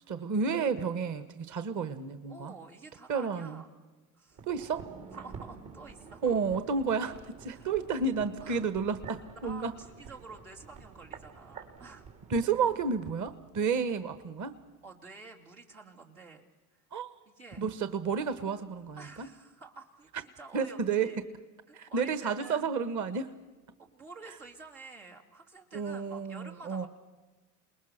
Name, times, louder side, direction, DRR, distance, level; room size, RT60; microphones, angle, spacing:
voice 1, 0.1-2.5 3.1-3.6 4.4-4.9 6.2-9.7 12.3-14.6 16.9-17.1 17.6-19.3 20.5-21.1 21.7-23.3 25.7-26.9, right 5 dB, 45° right, 12 dB, 1.4 m, -31 dB
voice 2, 2.3-3.7 4.1-4.4 5.1-6.4 7.5-7.7 8.4-8.7 9.4-12.1 14.8-16.4 16.7-16.8 17.2-17.6 19.0-21.2 21.7-22.7 23.8-26.9, right 4 dB, 85° right, -1 dB, 3.0 m, -49 dB
sound 1, 4.3-13.4 13.7-13.8, right 5 dB, 65° right, 4.0 m, -49 dB
28.5 x 20.5 x 6.7 m, 1.2 s
hypercardioid pair, 65°, 42 cm